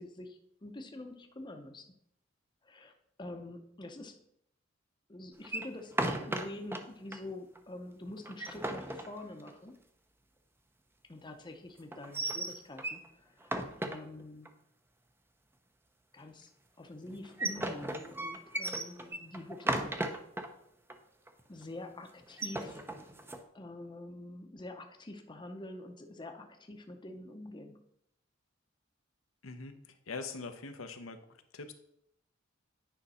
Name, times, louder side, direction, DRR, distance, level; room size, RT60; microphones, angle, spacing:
voice 1, 0.0-1.9 2.6-2.9 3.2-4.2 5.1-9.8 11.1-13.6 13.8-14.5 16.1-16.5 16.8-20.2 21.5-22.9 23.5-27.9, left 1 dB, 25° left, 4 dB, 0.7 m, -46 dB
sound 1, 5.4-6.8 7.1-7.2 7.5-7.6 8.2-9.7 11.9-13.1 13.4-14.5 17.1-20.5 20.9-21.0 21.3-21.6 22.2-23.4, right 1 dB, 10° right, 0.6 m, -36 dB
voice 2, 29.4-31.2 31.5-31.7, left 4 dB, 85° left, 7 dB, 0.8 m, -43 dB
9.2 x 5.2 x 4.2 m, 0.73 s
head